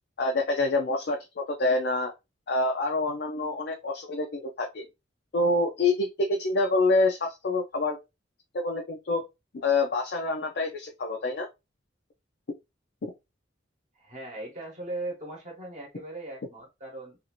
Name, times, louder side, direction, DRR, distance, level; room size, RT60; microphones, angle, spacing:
voice 1, 0.2-2.1 2.5-4.8 5.3-8.0 8.5-9.2 9.5-11.5 13.0-13.1, left 2 dB, 55° left, 0.4 m, -26 dB
voice 2, 13.9-17.2, right 2 dB, 40° right, 0.9 m, -38 dB
2.6 x 2.4 x 2.8 m
head